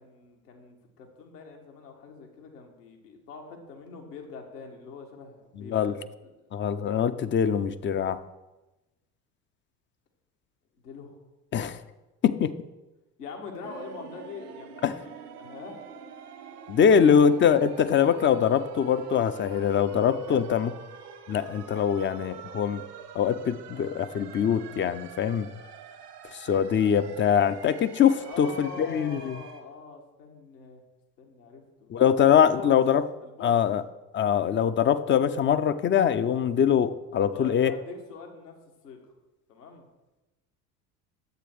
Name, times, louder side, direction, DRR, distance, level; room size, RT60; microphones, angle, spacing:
voice 1, 0.0-5.9 6.2-6.3 10.8-11.2 13.2-15.1 15.4-15.9 20.3-20.5 28.1-30.8 31.2-31.9 32.4-32.7 33.2-33.6 37.3-38.5 38.8-39.0 39.5-39.8, left 4 dB, 75° left, 2 dB, 1.9 m, -43 dB
voice 2, 5.6-5.9 6.5-8.2 11.5-11.8 12.2-12.5 14.8-15.0 16.7-20.7 21.3-22.8 23.1-25.5 26.3-29.4 31.9-33.0 33.4-33.8 34.1-37.7, left 8 dB, 25° left, 13 dB, 0.5 m, -23 dB
sound 1, 13.6-29.6, right 8 dB, 75° right, 1.3 m, -46 dB
10.5 x 8.2 x 4.6 m, 1.1 s
figure-of-eight pair, 65°, 47 cm